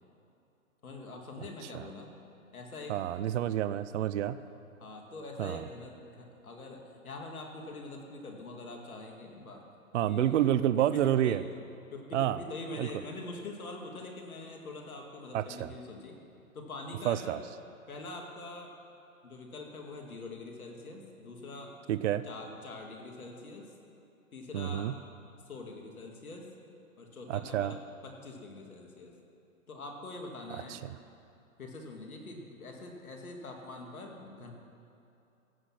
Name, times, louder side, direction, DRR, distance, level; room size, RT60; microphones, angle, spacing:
voice 1, 0.8-2.1 2.5-2.9 4.8-9.6 10.1-10.5 10.8-11.4 11.9-16.2 16.5-17.4 17.9-18.7 19.2-21.7 22.2-23.7 24.3-25.0 25.5-26.5 27.0-27.8 28.0-29.1 29.7-30.8 31.6-34.5, left 2 dB, 85° left, 1 dB, 2.4 m, -44 dB
voice 2, 2.9-4.4 5.4-5.6 9.9-11.4 12.1-12.4 12.8-12.9 15.3-15.7 17.0-17.4 21.9-22.2 24.5-24.9 27.3-27.7 30.5-31.0, right 11 dB, 60° right, 14 dB, 0.5 m, -29 dB
15.5 x 8.1 x 6.0 m, 2.8 s
hypercardioid pair, 135°, 42 cm